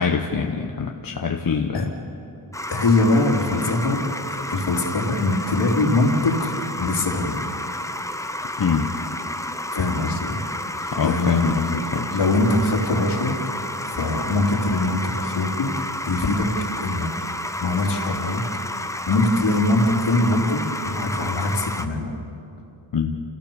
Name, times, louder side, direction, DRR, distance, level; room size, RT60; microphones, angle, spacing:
voice 1, 0.0-1.9 8.6-8.9 10.9-12.2 22.9-23.2, left 6 dB, 50° left, 2 dB, 1.3 m, -24 dB
sound 1, 2.5-21.9, left 1 dB, 5° left, 0.9 m, -31 dB
voice 2, 2.7-4.1 4.5-6.5 6.8-7.4 9.7-10.4 10.8-11.4 11.7-11.8 12.1-13.3 13.9-15.7 16.0-16.5 16.8-17.1 17.6-18.4 19.1-22.1, left 2 dB, 70° left, 1 dB, 3.3 m, -22 dB
28.5 x 16.5 x 7.1 m, 2.7 s
wide cardioid pair, 95°, 44 cm